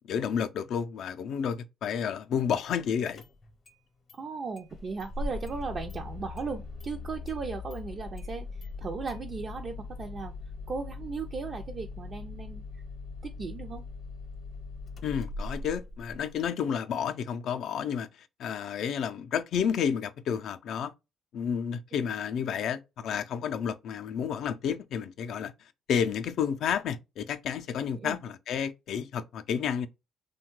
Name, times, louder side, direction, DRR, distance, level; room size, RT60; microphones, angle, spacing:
voice 1, 0.0-3.2 15.0-20.9 21.3-25.5 25.9-29.9, left 7 dB, 75° left, 0.4 m, -31 dB
Engine starting, 2.6-2.7 3.1-3.8 4.1-4.2 4.6-16.5, left 3 dB, 50° left, 0.7 m, -40 dB
voice 2, 4.1-10.3 10.7-12.6 13.2-13.9 27.9-28.2, right 4 dB, 50° right, 0.4 m, -37 dB
2.8 x 2.2 x 3.0 m
cardioid pair, 90°, 0 cm